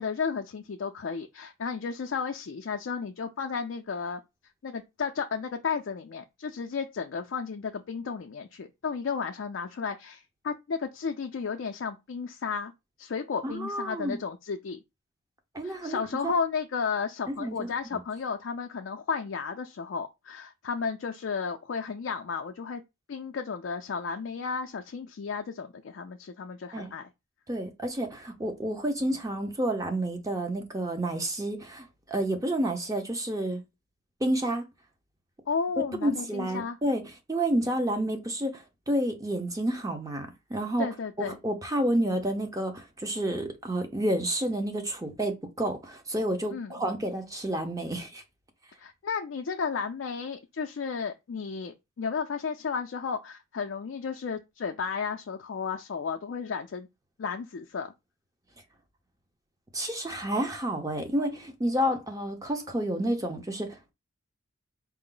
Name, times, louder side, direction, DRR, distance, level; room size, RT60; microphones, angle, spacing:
voice 1, 0.0-4.2 4.6-12.7 13.0-14.8 15.6-22.8 23.1-27.1 35.5-36.8 40.8-41.4 46.5-46.7 48.8-56.9 57.2-57.9, left 5 dB, 60° left, 0.4 m, -33 dB
voice 2, 13.4-14.2 15.5-16.3 17.3-18.0 26.7-26.9 27.5-33.6 34.2-34.7 36.0-37.0 37.3-40.9 41.2-48.2 59.7-63.9, right 1 dB, 15° right, 0.6 m, -30 dB
4.4 x 2.0 x 3.8 m
head